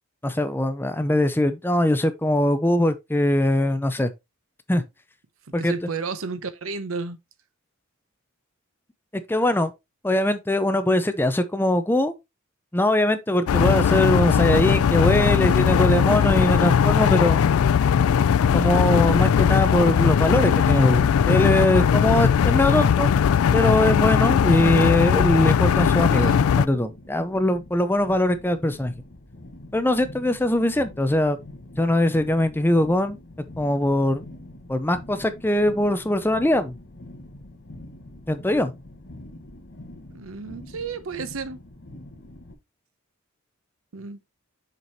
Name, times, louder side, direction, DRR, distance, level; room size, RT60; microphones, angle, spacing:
voice 1, 0.2-4.1 4.7-4.8 5.5-5.7 9.3-9.7 10.0-12.1 12.7-17.4 18.5-23.1 23.5-28.9 29.7-31.4 31.8-33.2 33.6-34.2 34.7-36.7 38.3-38.7, left 1 dB, 10° left, 0.6 m, -21 dB
voice 2, 5.5-7.2 26.1-26.5 40.1-41.6 43.9-44.2, right 4 dB, 70° right, 0.8 m, -32 dB
sound 1, 13.5-26.7, left 7 dB, 85° left, 0.3 m, -19 dB
sound 2, 23.0-42.5, left 1 dB, 55° left, 1.4 m, -44 dB
6.7 x 5.0 x 2.8 m
head